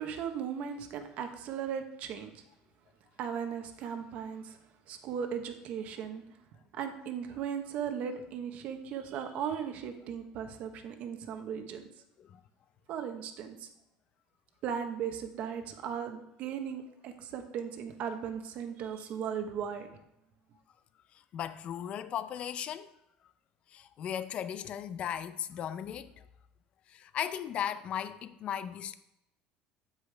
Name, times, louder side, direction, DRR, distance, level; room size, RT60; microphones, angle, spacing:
voice 1, 0.0-2.4 3.2-4.6 4.9-6.4 6.7-11.8 12.9-13.7 14.6-19.9, right 7 dB, 50° right, 1.1 m, -37 dB
voice 2, 21.3-22.9 23.7-26.2 26.9-28.9, left 9 dB, 40° left, 0.5 m, -37 dB
8.4 x 8.0 x 3.4 m
cardioid pair, 145°, 3 cm